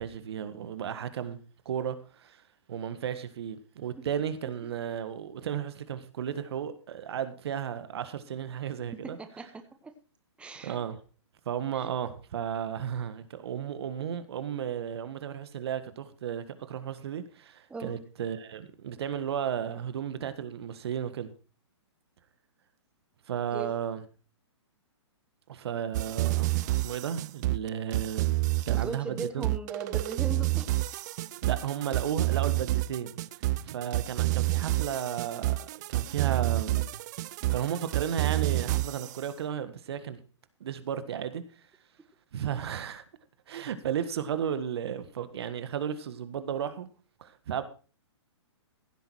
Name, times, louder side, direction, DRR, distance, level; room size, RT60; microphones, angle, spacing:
voice 1, 0.0-1.4 1.6-2.4 2.7-9.2 10.6-11.0 11.4-21.3 23.3-24.0 25.5-29.5 31.4-33.2 33.6-37.0 37.5-40.2 40.6-41.4 42.3-43.0 43.5-46.9 47.2-47.6, right 9 dB, 60° right, 1.6 m, -34 dB
voice 2, 9.0-9.9 10.4-10.8 11.7-11.9 17.7-18.0 23.5-23.7 28.7-30.7, right 4 dB, 5° right, 1.1 m, -39 dB
sound 1, 25.9-39.2, right 18 dB, 40° right, 0.5 m, -29 dB
15.5 x 8.1 x 4.6 m
hypercardioid pair, 135°, 15 cm